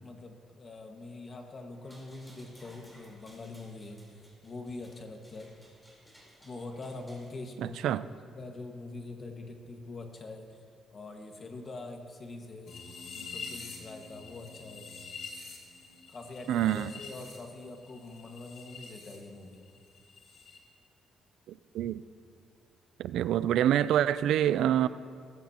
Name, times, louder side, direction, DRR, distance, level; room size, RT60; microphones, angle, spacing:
voice 1, 0.0-5.5 6.4-10.6 10.9-12.7 13.1-14.9 16.1-19.6, left 2 dB, 40° left, 1.6 m, -44 dB
sound 1, 1.7-7.3, equal, 5° left, 3.9 m, -58 dB
sound 2, 12.7-19.2 19.4-20.6, left 4 dB, 70° left, 2.4 m, -46 dB
voice 2, 16.5-16.9 21.7-22.0 23.0-24.9, right 11 dB, 80° right, 0.3 m, -26 dB
18.0 x 15.5 x 2.9 m
cardioid pair, 115°, 0 cm